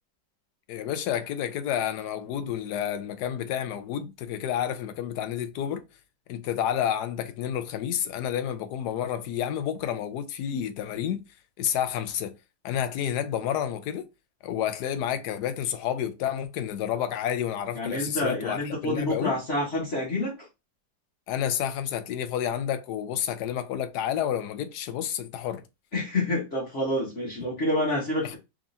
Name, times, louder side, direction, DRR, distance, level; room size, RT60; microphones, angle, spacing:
voice 1, 0.7-5.8 6.3-11.2 11.6-12.4 12.6-14.1 14.4-19.3 21.3-25.6 28.2-28.4, left 10 dB, 70° left, 1.1 m, -30 dB
voice 2, 17.7-20.5 25.9-28.4, left 1 dB, 45° left, 1.5 m, -28 dB
3.6 x 3.6 x 2.6 m
omnidirectional pair, 2.0 m